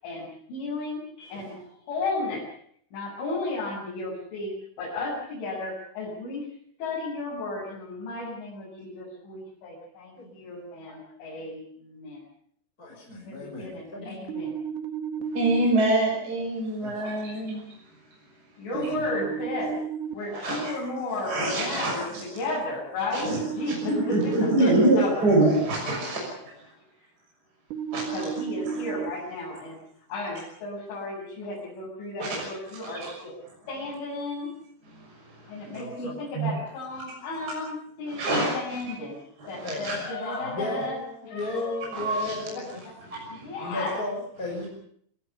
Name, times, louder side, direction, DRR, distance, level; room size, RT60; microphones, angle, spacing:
voice 1, 0.0-1.0 1.3-2.5 2.9-4.5 4.8-6.5 6.8-12.2 13.3-14.5 18.6-19.8 20.1-25.3 28.1-29.8 30.1-33.4 33.7-34.5 35.5-39.2 39.5-41.0 41.2-42.1 42.5-42.6 43.3-44.0, left 2 dB, 70° left, -5 dB, 9.8 m, -34 dB
voice 2, 1.2-1.5 10.1-10.3 12.8-14.1 16.8-17.1 18.7-19.4 35.7-36.1 39.6-39.9 40.4-42.7 43.6-44.7, left 2 dB, 15° left, -2 dB, 6.2 m, -35 dB
sound 1, 14.3-15.7 18.7-20.1 23.2-24.6 27.7-29.1, right 8 dB, 55° right, 2.4 m, -33 dB
voice 3, 15.3-17.6 20.3-20.8 21.3-22.2 23.1-23.4 23.7-26.3 27.9-28.1 28.7-28.8 32.2-32.3 33.0-33.1 36.3-36.5 38.1-38.5 39.4-40.0 41.9-42.3 43.1-43.4, right 2 dB, 20° right, -2 dB, 6.4 m, -25 dB
27.5 x 18.0 x 6.9 m, 0.62 s
omnidirectional pair, 5.7 m